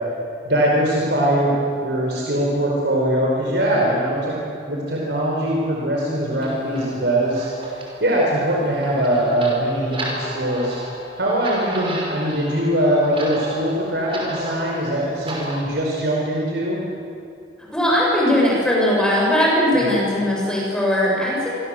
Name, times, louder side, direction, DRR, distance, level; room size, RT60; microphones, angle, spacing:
voice 1, 0.4-1.5 1.8-4.4 4.7-7.5 8.0-10.8 11.2-16.8 19.7-19.9, right 1 dB, 65° right, -3 dB, 4.9 m, -21 dB
sound 1, 6.4-15.6, right 1 dB, 30° right, 5.8 m, -33 dB
voice 2, 17.7-21.5, left 1 dB, 5° left, -4 dB, 7.6 m, -19 dB
26.5 x 25.0 x 7.9 m, 2.4 s
head